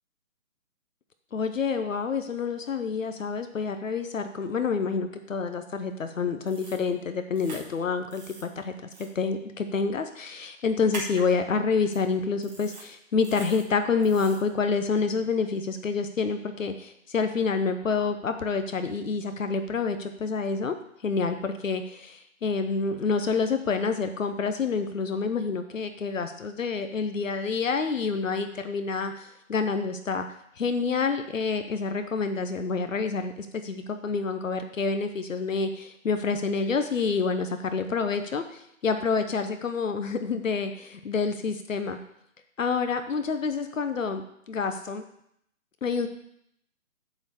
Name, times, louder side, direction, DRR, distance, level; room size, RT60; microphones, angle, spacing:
voice 1, 1.3-8.7 9.0-20.8 21.0-30.3 30.6-42.0 42.6-45.0 45.8-46.1, left 5 dB, 65° left, 8 dB, 1.0 m, -28 dB
sound 1, 6.5-6.8 7.4-7.6 8.1-8.4 8.9-9.1 10.9-11.2 11.9-12.0 12.4-12.9 13.2-13.6 14.0-14.4, right 3 dB, 30° right, 1.8 m, -41 dB
8.0 x 4.4 x 7.2 m, 0.73 s
hypercardioid pair, 175°, 42 cm